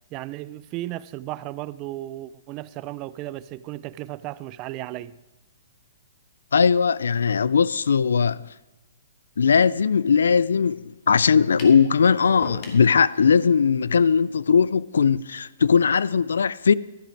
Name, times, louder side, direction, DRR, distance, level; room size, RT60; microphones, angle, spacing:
voice 1, 0.1-5.2, right 16 dB, 30° right, 0.3 m, -35 dB
voice 2, 6.5-8.5 9.4-16.7, left 6 dB, 85° left, 0.3 m, -19 dB
sound 1, 11.6-11.8 12.4-12.9, left 4 dB, 40° left, 1.9 m, -36 dB
12.5 x 9.9 x 4.6 m
hypercardioid pair, 145°, 0 cm